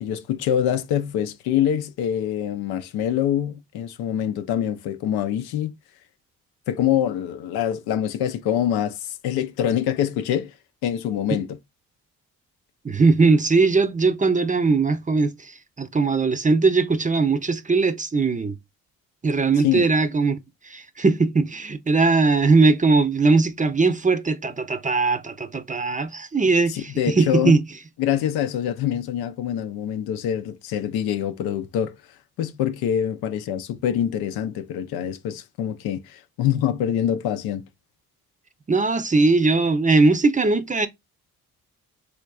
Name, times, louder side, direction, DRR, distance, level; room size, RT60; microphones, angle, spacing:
voice 1, 0.0-5.7 6.7-10.5 10.8-11.5 19.6-19.9 26.7-27.6 28.0-32.0 32.4-37.7, left 10 dB, 85° left, 0.6 m, -25 dB
voice 2, 12.8-18.5 19.2-20.4 20.6-27.6 38.7-40.9, right 3 dB, 20° right, 0.5 m, -20 dB
3.7 x 3.4 x 2.3 m
supercardioid pair, 55°, 37 cm